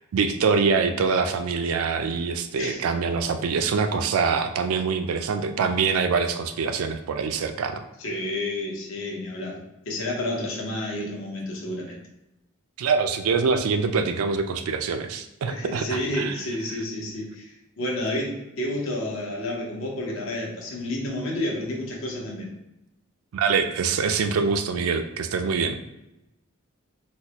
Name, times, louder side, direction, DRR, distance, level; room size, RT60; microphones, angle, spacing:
voice 1, 0.1-7.8 12.8-16.3 23.3-25.8, right 5 dB, 90° right, 8 dB, 0.4 m, -24 dB
voice 2, 8.0-12.0 15.5-22.5, left 1 dB, 70° left, -1 dB, 0.8 m, -30 dB
4.0 x 2.1 x 2.9 m, 0.92 s
head